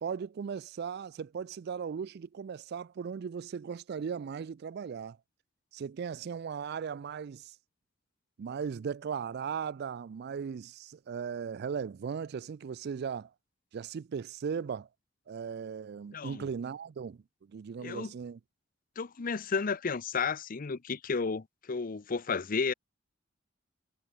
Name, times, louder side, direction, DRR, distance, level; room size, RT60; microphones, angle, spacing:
voice 1, 0.0-5.2 5.7-7.5 8.4-13.3 13.7-14.9 15.3-17.2 17.5-18.4, right 6 dB, 55° right, 0.4 m, -37 dB
voice 2, 16.1-16.5 17.8-18.1 19.0-22.7, left 5 dB, 45° left, 0.7 m, -32 dB
head